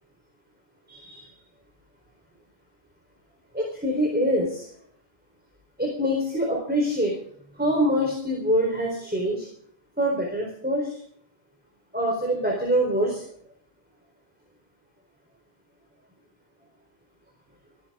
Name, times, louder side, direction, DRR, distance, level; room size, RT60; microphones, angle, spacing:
voice 1, 0.9-1.3 3.5-4.7 5.8-7.2 7.5-9.5 10.0-11.0 11.9-13.2, equal, 10° right, -1 dB, 4.1 m, -25 dB
27.0 x 10.5 x 3.7 m, 0.63 s
omnidirectional pair, 1.1 m